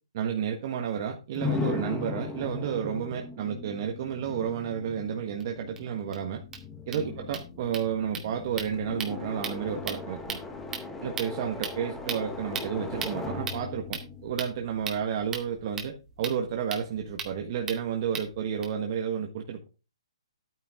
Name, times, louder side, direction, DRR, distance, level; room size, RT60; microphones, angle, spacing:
voice 1, 0.1-6.4 6.9-10.4 11.0-19.7, right 8 dB, 40° right, 1.5 m, -31 dB
sound 1, 1.3-15.2, left 4 dB, 5° left, 1.3 m, -38 dB
sound 2, 5.4-5.5 5.8-5.9 6.1-6.2 6.4-18.6, right 6 dB, 15° right, 2.2 m, -40 dB
11.5 x 9.3 x 3.7 m
hypercardioid pair, 155°, 3 cm